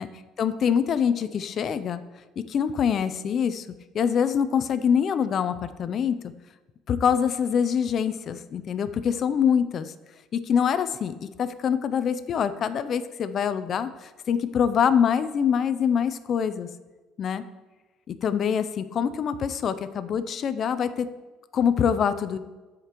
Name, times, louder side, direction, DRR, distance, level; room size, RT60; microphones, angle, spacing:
voice 1, 0.4-2.0 2.5-3.6 3.9-6.2 6.9-9.9 10.3-16.7 17.2-17.4 18.1-21.1 21.5-22.4, left 7 dB, 40° left, 12 dB, 0.4 m, -25 dB
14.0 x 5.0 x 3.0 m, 1.2 s
cardioid pair, 145°, 0 cm